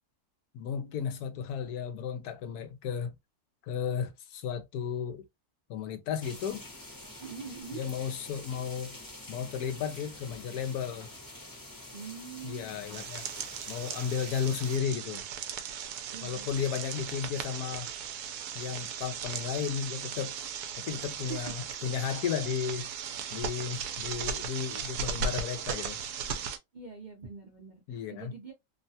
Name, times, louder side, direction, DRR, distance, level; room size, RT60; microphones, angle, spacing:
voice 1, 0.5-3.1 3.6-5.2 5.7-6.6 7.7-9.0 9.3-11.1 12.4-13.2 13.7-15.2 16.2-17.9 18.5-20.4 20.8-22.9 23.3-26.0 27.9-28.3, left 7 dB, 85° left, 1.2 m, -34 dB
sound 1, 6.2-14.8, left 1 dB, 15° left, 0.8 m, -47 dB
voice 2, 7.2-7.8 11.9-12.7 16.1-16.7 21.2-21.4 23.7-24.2 26.7-28.5, right 6 dB, 45° right, 0.7 m, -44 dB
sound 2, 12.9-26.6, right 7 dB, 90° right, 1.1 m, -37 dB
3.1 x 2.2 x 2.7 m
omnidirectional pair, 1.6 m